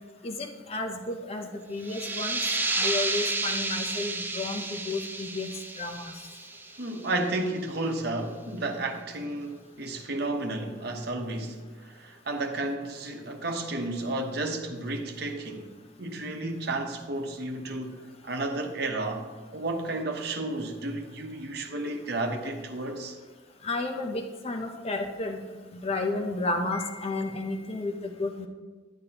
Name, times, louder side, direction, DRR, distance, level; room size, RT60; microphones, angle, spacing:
voice 1, 0.2-2.4 2.8-5.5 5.8-6.1 23.6-25.4 25.7-28.5, left 2 dB, 35° left, 0.7 m, -32 dB
sound 1, 1.8-7.2, right 2 dB, 10° right, 0.4 m, -31 dB
voice 2, 6.8-15.7 16.0-19.3 19.5-23.2, right 2 dB, 60° right, 1.0 m, -32 dB
11.0 x 8.3 x 2.9 m
head